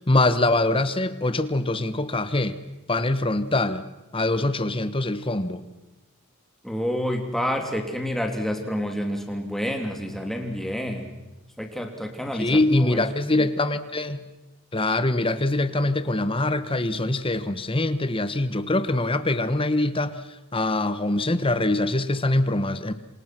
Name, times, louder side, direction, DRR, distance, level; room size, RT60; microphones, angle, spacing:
voice 1, 0.0-2.6 2.9-3.8 4.1-5.6 12.4-14.3 14.7-20.2 20.5-22.9, left 2 dB, 25° left, 12 dB, 1.3 m, -23 dB
voice 2, 6.6-11.1 11.6-13.1, equal, ahead, 3 dB, 3.1 m, -28 dB
28.0 x 26.5 x 6.2 m, 1.0 s
head